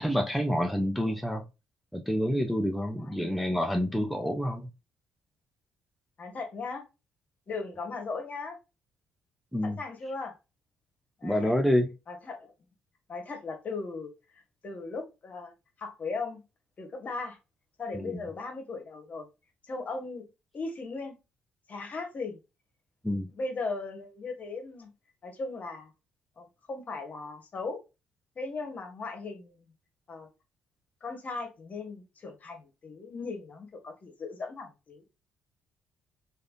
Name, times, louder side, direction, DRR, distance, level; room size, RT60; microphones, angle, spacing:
voice 1, 0.0-1.4 1.9-4.7 9.5-9.8 11.2-11.9 17.9-18.2 23.0-23.3, equal, ahead, 0.6 m, -28 dB
voice 2, 3.0-3.4 6.2-6.9 7.5-8.6 9.6-10.4 11.2-11.5 12.1-12.5 13.1-15.5 15.8-16.4 16.8-17.4 17.8-19.3 19.7-20.2 20.5-21.2 21.7-22.4 23.4-24.9 25.2-25.9 26.4-27.8 28.3-29.7 30.1-30.3 31.0-35.0, left 3 dB, 45° left, 1.2 m, -38 dB
3.3 x 2.6 x 2.4 m
supercardioid pair, 55°, 4 cm